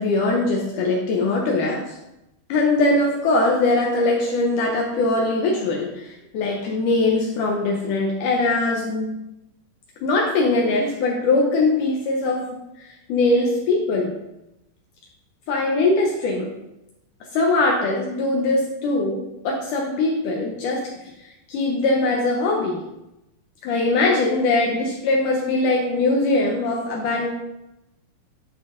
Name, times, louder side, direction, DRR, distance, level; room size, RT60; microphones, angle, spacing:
voice 1, 0.0-2.0 2.5-9.2 10.0-12.4 12.8-14.1 15.5-16.5 17.3-20.9 21.5-22.8 23.6-27.3, left 2 dB, 75° left, -1 dB, 2.0 m, -21 dB
10.0 x 3.7 x 3.8 m, 0.92 s
omnidirectional pair, 4.3 m